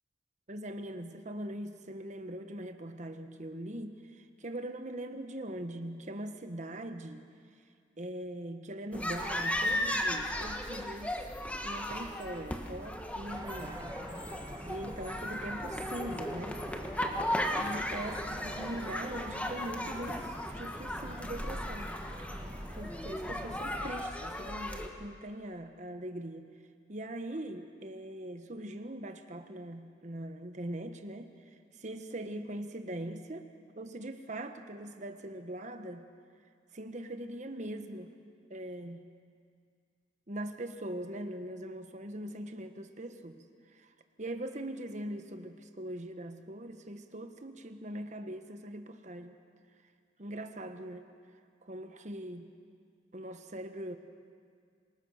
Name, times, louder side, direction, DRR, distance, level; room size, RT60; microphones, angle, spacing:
voice 1, 0.5-7.2 8.0-11.2 11.6-14.0 14.7-16.6 17.6-21.9 22.7-26.5 26.9-31.3 31.7-33.5 33.7-36.1 36.7-38.1 38.5-39.0 40.3-43.4 43.7-43.9 44.2-49.4 50.2-51.0 51.6-52.5 53.1-54.0, right 1 dB, 45° right, 7 dB, 1.3 m, -41 dB
sound 1, 8.9-24.9, left 1 dB, 10° left, 1.3 m, -36 dB
sound 2, 13.3-23.9, right 1 dB, 25° right, 1.9 m, -47 dB
26.5 x 19.5 x 6.5 m, 2.2 s
head